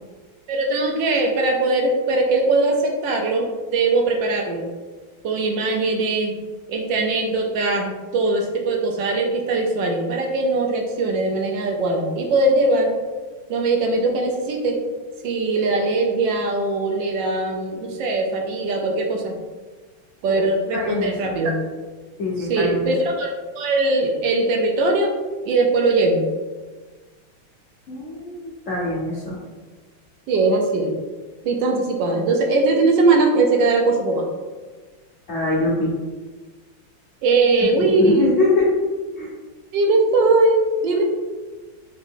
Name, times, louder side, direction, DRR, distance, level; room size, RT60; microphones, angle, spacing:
voice 1, 0.5-4.6 5.2-6.4 6.7-12.9 13.5-14.8 15.2-19.3 20.2-21.5 22.4-25.1 25.5-26.2 30.3-30.9 31.4-34.2 37.2-38.3 39.7-41.0, right 2 dB, 75° right, 2 dB, 1.3 m, -20 dB
voice 2, 20.7-21.3 22.2-22.9 27.9-29.4 35.3-35.9 37.8-38.7 39.2-39.3, left 2 dB, 60° left, -5 dB, 0.8 m, -23 dB
3.7 x 3.4 x 3.6 m, 1.3 s
omnidirectional pair, 2.1 m